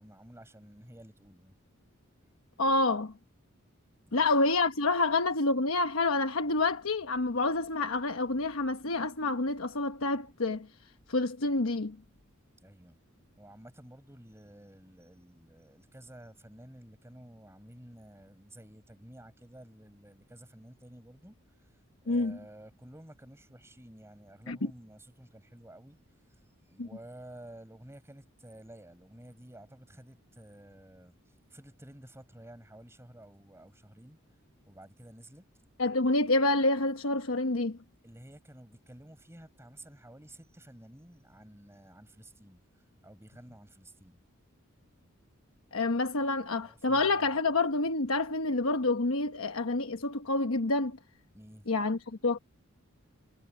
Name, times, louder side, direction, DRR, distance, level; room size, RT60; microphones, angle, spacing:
voice 1, 0.0-1.5 4.0-4.3 12.6-13.0 13.4-34.2 34.6-35.5 38.0-44.2 46.6-47.4 51.3-51.7, right 1 dB, 15° right, 5.5 m, -52 dB
voice 2, 2.6-3.1 4.1-10.7 11.1-12.0 22.1-22.4 24.5-24.6 26.8-26.9 35.8-37.8 45.7-51.0 51.7-52.4, left 2 dB, 75° left, 1.1 m, -28 dB
head